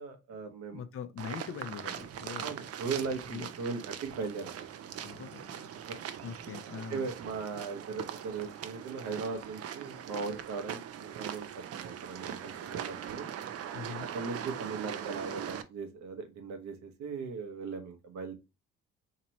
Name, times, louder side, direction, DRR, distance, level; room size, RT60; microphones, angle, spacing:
voice 1, 0.0-0.8 2.4-4.9 5.7-6.0 6.7-13.3 14.1-18.3, right 4 dB, 75° right, 1.0 m, -38 dB
voice 2, 0.7-2.5 3.3-3.5 5.0-5.7 6.0-7.1 13.7-14.1, left 7 dB, 50° left, 0.7 m, -42 dB
sound 1, 1.2-15.6, right 9 dB, 55° right, 0.5 m, -41 dB
2.9 x 2.8 x 4.2 m
supercardioid pair, 65°, 29 cm